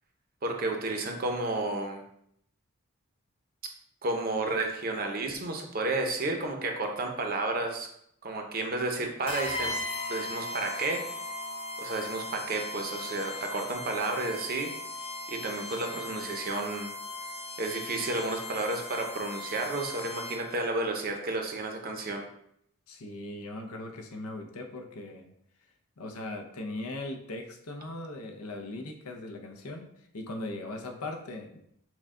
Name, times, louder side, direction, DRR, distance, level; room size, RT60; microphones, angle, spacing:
voice 1, 0.4-2.0 4.0-7.9 8.2-9.7 10.1-11.0 11.8-14.7 15.3-16.9 17.6-22.2, right 2 dB, 40° right, 3 dB, 0.7 m, -31 dB
sound 1, 9.3-20.6, left 2 dB, 25° left, 0.6 m, -38 dB
voice 2, 22.9-25.3 26.0-31.6, left 2 dB, 80° left, 4 dB, 0.7 m, -39 dB
6.2 x 2.3 x 3.7 m, 0.73 s
head